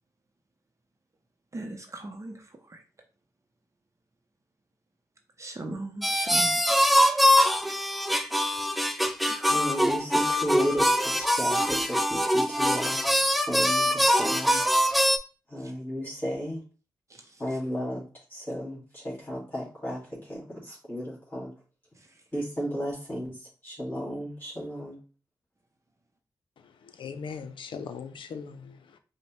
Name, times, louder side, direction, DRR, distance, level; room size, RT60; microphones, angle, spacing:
voice 1, 1.5-2.8 5.4-6.6 6.9-7.2 17.1-17.4, right 2 dB, 35° right, 0.7 m, -39 dB
sound 1, 6.0-15.2, equal, ahead, 0.4 m, -23 dB
voice 2, 9.5-14.7 15.5-16.6 17.4-18.0 18.3-21.5 22.3-25.0, equal, 25° left, 2.1 m, -34 dB
voice 3, 26.6-29.0, left 6 dB, 80° left, 0.5 m, -40 dB
5.2 x 2.1 x 3.1 m
cardioid pair, 60°, 8 cm